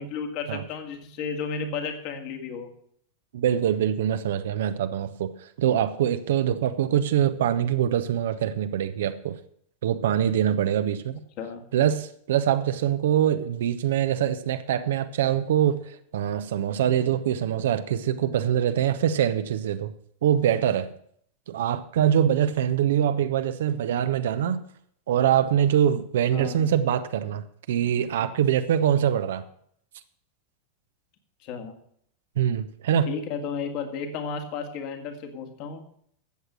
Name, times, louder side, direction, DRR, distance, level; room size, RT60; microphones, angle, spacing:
voice 1, 0.0-2.7 11.4-11.6 26.3-26.7 31.4-31.7 33.0-35.8, left 5 dB, 45° left, 5 dB, 2.2 m, -33 dB
voice 2, 3.3-9.4 9.8-11.2 11.7-15.8 16.1-19.9 20.2-20.9 21.5-24.6 25.1-29.4 32.4-33.1, right 10 dB, 60° right, 10 dB, 0.8 m, -24 dB
14.0 x 8.1 x 6.3 m, 0.66 s
figure-of-eight pair, 90°, 0 cm